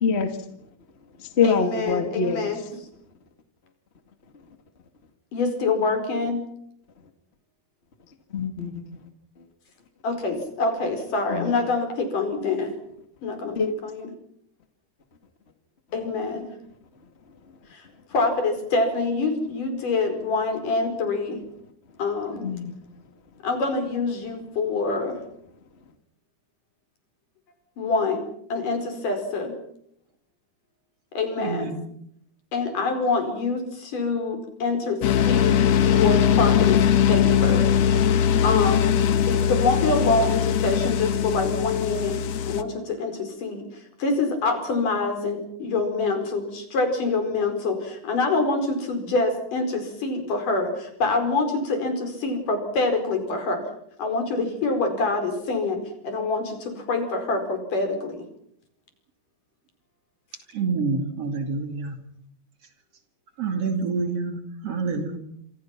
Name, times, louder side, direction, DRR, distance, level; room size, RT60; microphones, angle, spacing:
voice 1, 0.0-0.4 1.2-2.5 8.3-9.0 11.3-11.5 13.6-13.7 22.4-22.7, left 5 dB, 25° left, 7 dB, 1.9 m, -24 dB
voice 2, 1.4-2.6 5.3-6.4 10.0-12.7 13.2-14.1 15.9-16.5 17.7-21.4 22.0-22.5 23.4-25.2 27.8-28.2 28.5-29.5 31.1-31.7 32.5-36.8 37.1-37.7 38.4-42.2 42.5-43.7 44.0-53.6 54.0-58.2, left 3 dB, 75° left, 6 dB, 6.4 m, -26 dB
voice 3, 31.4-31.8 60.5-62.0 63.4-65.2, right 4 dB, 50° right, 6 dB, 3.5 m, -27 dB
sound 1, 35.0-42.6, left 9 dB, 60° left, 2.1 m, -20 dB
27.0 x 27.0 x 6.0 m, 0.72 s
omnidirectional pair, 3.7 m